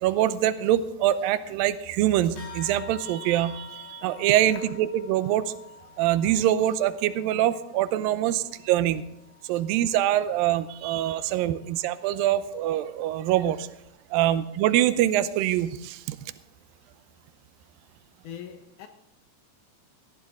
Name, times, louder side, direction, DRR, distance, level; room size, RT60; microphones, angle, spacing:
voice 1, 0.0-5.5 6.0-9.0 9.4-13.7 14.1-16.2, right 12 dB, 80° right, 2.3 m, -24 dB
sound 1, 2.4-12.2, left 7 dB, 85° left, 6.1 m, -48 dB
voice 2, 18.2-18.9, left 9 dB, 70° left, 2.3 m, -41 dB
18.0 x 13.0 x 3.7 m
omnidirectional pair, 4.3 m